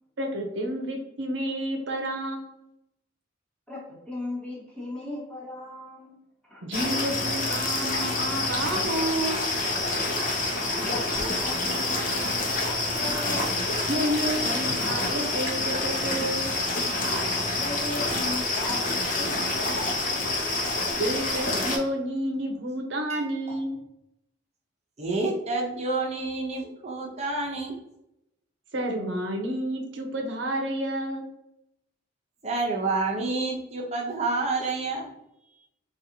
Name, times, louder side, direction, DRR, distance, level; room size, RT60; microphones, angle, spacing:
voice 1, 0.2-2.7 6.6-9.4 13.9-16.5 21.0-23.8 28.7-31.3, right 1 dB, 70° right, 2 dB, 0.7 m, -30 dB
voice 2, 3.7-6.2 6.4-6.7 10.7-13.6 17.5-20.3, left 2 dB, 5° left, -5 dB, 0.9 m, -38 dB
sound 1, 6.7-21.8, left 2 dB, 45° left, 0.7 m, -27 dB
voice 3, 23.1-23.6 25.0-27.7 32.4-35.1, right 3 dB, 35° right, 0 dB, 0.8 m, -29 dB
4.0 x 2.4 x 2.8 m, 0.84 s
head